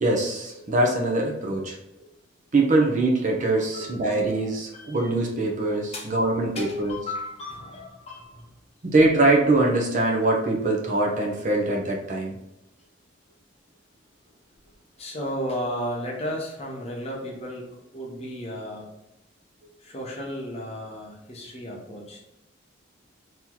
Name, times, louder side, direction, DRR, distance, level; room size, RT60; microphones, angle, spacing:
voice 1, 0.0-1.8 2.5-7.0 8.8-12.4, right 2 dB, 40° right, 0 dB, 0.7 m, -23 dB
voice 2, 3.7-5.0 5.9-6.1 6.6-8.5 15.0-19.0 19.8-22.2, equal, 35° left, -2 dB, 0.9 m, -34 dB
3.0 x 2.8 x 3.8 m, 0.89 s
head